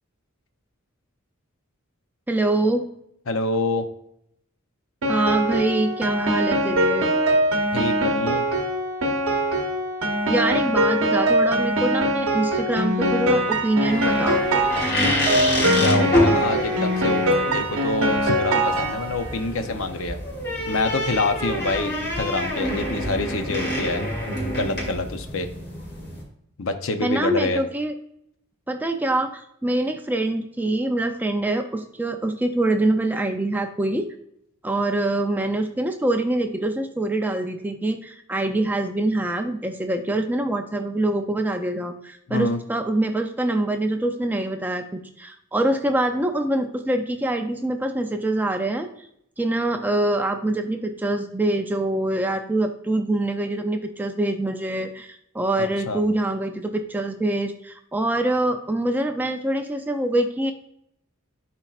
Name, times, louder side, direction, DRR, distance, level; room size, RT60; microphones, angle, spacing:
voice 1, 2.3-2.9 5.1-7.1 10.3-14.4 27.0-27.9 28.7-34.1 34.6-48.9 49.4-60.5, right 1 dB, 10° right, 5 dB, 0.4 m, -24 dB
voice 2, 3.3-3.8 7.7-8.4 15.6-17.2 17.5-20.2 20.7-24.0 24.4-25.5 26.6-27.6 42.3-42.6 55.9-56.0, left 3 dB, 65° left, 8 dB, 0.7 m, -26 dB
Piano, 5.0-19.4, right 1 dB, 65° right, 1.0 m, -22 dB
sound 1, 13.8-26.2, left 1 dB, 50° left, 2.4 m, -27 dB
11.0 x 4.4 x 2.4 m, 0.74 s
head